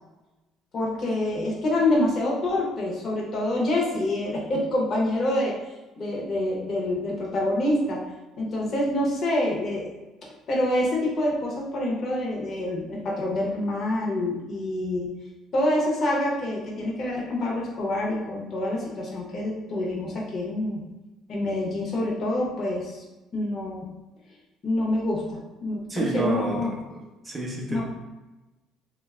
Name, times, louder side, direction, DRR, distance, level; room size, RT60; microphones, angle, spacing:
voice 1, 0.7-5.5 6.0-8.0 8.4-9.9 10.2-15.1 15.5-20.8 21.3-23.0 23.3-23.9 24.6-26.7 27.7-27.8, left 1 dB, 40° left, -3 dB, 0.7 m, -26 dB
voice 2, 25.9-27.8, right 2 dB, 15° right, -1 dB, 0.6 m, -30 dB
2.7 x 2.2 x 3.4 m, 1.1 s
cardioid pair, 140°, 0 cm